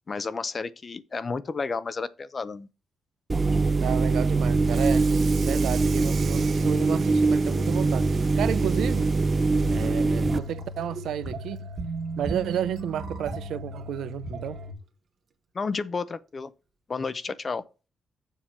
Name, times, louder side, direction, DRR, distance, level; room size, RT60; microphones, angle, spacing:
voice 1, 0.1-2.7 15.5-16.5 16.9-17.6, left 4 dB, 30° left, 0.6 m, -31 dB
sound 1, 3.3-10.4, right 3 dB, 20° right, 0.4 m, -23 dB
voice 2, 3.8-5.1 5.5-9.1 9.7-11.7 12.2-14.6, right 10 dB, 85° right, 0.5 m, -32 dB
Water tap faucet / Sink (filling or washing), 4.5-11.2 11.5-11.8 12.1-12.2 12.7-12.8 13.9-14.0 14.4-14.7, right 6 dB, 45° right, 1.1 m, -43 dB
MS-Navas norm, 9.5-14.7, right 1 dB, 60° right, 1.9 m, -36 dB
7.4 x 5.1 x 5.8 m
wide cardioid pair, 155°, 0 cm